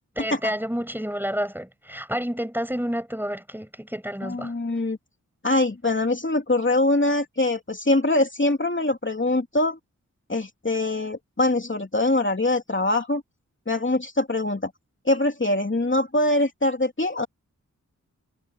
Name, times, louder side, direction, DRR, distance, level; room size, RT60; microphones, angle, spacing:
voice 1, 0.1-4.5, equal, 5° right, 6.8 m, -29 dB
voice 2, 4.2-5.0 5.4-9.8 10.3-13.2 13.7-14.7 15.0-17.3, left 2 dB, 35° left, 3.0 m, -23 dB
cardioid pair, 40°, 33 cm